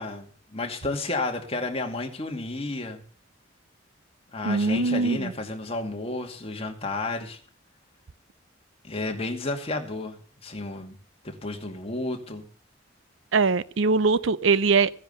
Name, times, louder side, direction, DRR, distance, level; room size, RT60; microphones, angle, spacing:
voice 1, 0.0-3.0 4.3-7.4 8.8-11.0 11.2-12.5, left 2 dB, 30° left, 2.3 m, -32 dB
voice 2, 4.4-5.3 13.3-14.9, right 4 dB, 70° right, 0.6 m, -22 dB
15.5 x 10.0 x 6.7 m
head